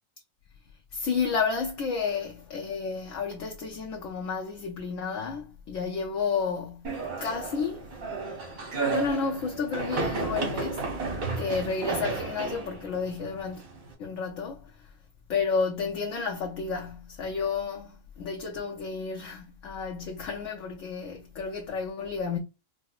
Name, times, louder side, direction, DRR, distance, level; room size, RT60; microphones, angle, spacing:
voice 1, 0.9-7.9 8.8-13.6 14.0-14.8 15.3-22.4, left 5 dB, 70° left, 1.0 m, -31 dB
sound 1, 6.8-13.9, right 4 dB, 90° right, 1.7 m, -33 dB
4.8 x 2.0 x 2.4 m
omnidirectional pair, 1.4 m